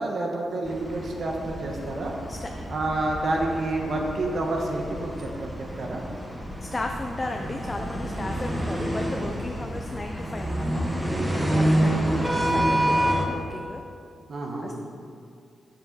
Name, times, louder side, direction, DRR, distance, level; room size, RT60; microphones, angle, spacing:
voice 1, 0.0-2.1 2.7-5.3 5.6-6.0 14.3-14.7, right 2 dB, 60° right, 0 dB, 1.3 m, -28 dB
sound 1, 0.6-13.2, right 1 dB, 10° right, 1.2 m, -28 dB
voice 2, 6.6-10.9 11.5-13.8 14.6-14.7, left 2 dB, 25° left, 3 dB, 0.5 m, -35 dB
7.6 x 7.2 x 5.3 m, 2.3 s
cardioid pair, 90°, 0 cm